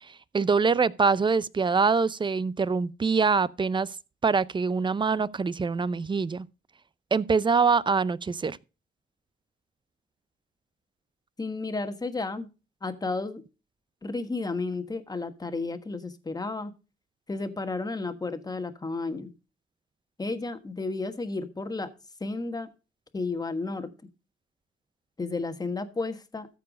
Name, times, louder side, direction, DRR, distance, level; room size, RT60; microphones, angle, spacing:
voice 1, 0.0-4.0 4.2-6.5 7.1-8.6, right 5 dB, 25° right, 0.5 m, -24 dB
voice 2, 11.4-12.5 12.8-13.4 14.0-16.7 17.3-19.3 20.2-21.9 22.2-22.7 23.1-23.9 25.2-26.5, left 3 dB, 20° left, 1.4 m, -32 dB
14.0 x 4.7 x 5.1 m
cardioid pair, 90°, 20 cm